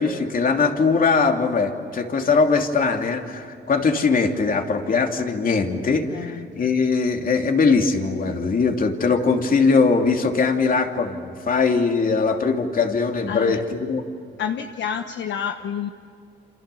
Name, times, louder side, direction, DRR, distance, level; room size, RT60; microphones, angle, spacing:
voice 1, 0.0-14.0, left 4 dB, 45° left, 4 dB, 2.9 m, -21 dB
voice 2, 6.1-6.5 13.3-13.6 14.4-15.9, left 8 dB, 70° left, 6 dB, 1.2 m, -29 dB
28.0 x 27.5 x 7.0 m, 2.4 s
cardioid pair, 90°, 20 cm